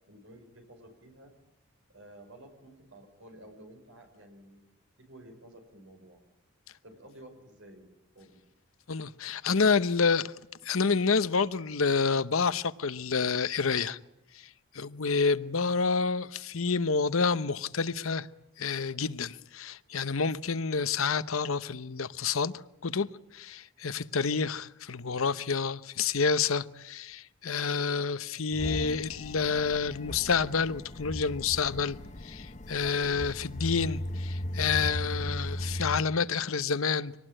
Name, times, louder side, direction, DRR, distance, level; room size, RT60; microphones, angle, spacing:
voice 1, 0.1-1.3 1.9-4.7 5.0-6.2 6.8-7.9 8.2-8.4, right 1 dB, 70° right, 5.5 m, -52 dB
voice 2, 8.9-10.3 10.6-14.0 14.7-18.3 18.6-22.5 22.8-23.1 23.3-32.0 32.2-37.1, left 5 dB, 80° left, 0.9 m, -28 dB
sound 1, 28.5-36.0, left 1 dB, 35° left, 0.9 m, -37 dB
25.0 x 19.0 x 8.9 m
head